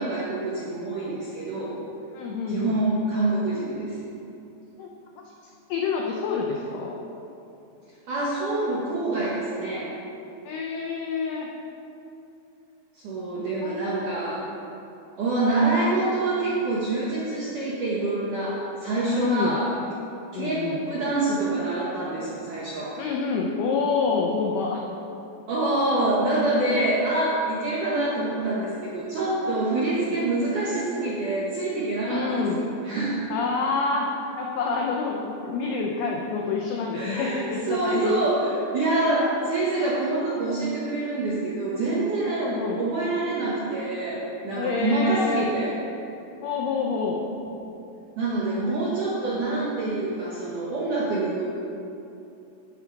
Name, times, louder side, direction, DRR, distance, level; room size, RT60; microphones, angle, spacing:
voice 1, 0.0-1.8 2.5-3.9 8.1-9.9 13.0-14.4 15.2-19.7 20.3-22.9 25.5-33.2 36.9-45.7 47.3-47.8 48.2-51.4, right 2 dB, 70° right, -7 dB, 1.9 m, -26 dB
voice 2, 2.1-2.8 4.8-4.9 5.2-5.3 5.7-7.0 10.4-11.5 13.3-14.1 19.1-19.6 20.3-20.8 23.0-24.8 30.1-30.2 32.0-32.6 33.3-34.1 34.4-38.3 42.4-42.8 44.6-45.5 46.4-47.2, left 4 dB, 85° left, -1 dB, 2.2 m, -27 dB
13.5 x 5.8 x 4.6 m, 2.8 s
omnidirectional pair, 5.4 m